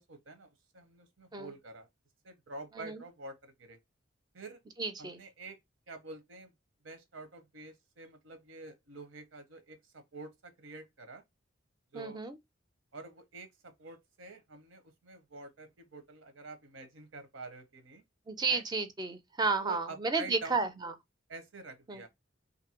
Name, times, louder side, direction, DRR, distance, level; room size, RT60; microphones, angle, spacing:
voice 1, 0.0-1.9 2.2-3.8 4.3-4.6 5.0-5.6 5.9-6.5 6.8-11.2 11.9-12.2 12.9-18.0 18.5-18.6 19.6-20.7 21.3-22.1, right 3 dB, 85° right, 0.8 m, -48 dB
voice 2, 4.8-5.2 11.9-12.3 18.3-20.9 21.9-22.0, right 4 dB, 20° right, 0.4 m, -32 dB
2.6 x 2.5 x 2.8 m
head